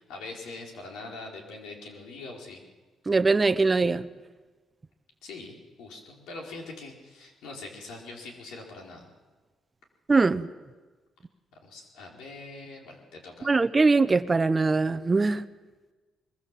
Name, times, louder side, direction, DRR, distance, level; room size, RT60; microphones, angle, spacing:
voice 1, 0.0-2.6 5.2-9.1 11.6-13.5, left 3 dB, 90° left, 0 dB, 4.6 m, -43 dB
voice 2, 3.1-4.1 10.1-10.5 13.4-15.4, right 3 dB, 25° right, 13 dB, 0.9 m, -22 dB
22.5 x 22.0 x 7.5 m, 1.3 s
cardioid pair, 90°, 0 cm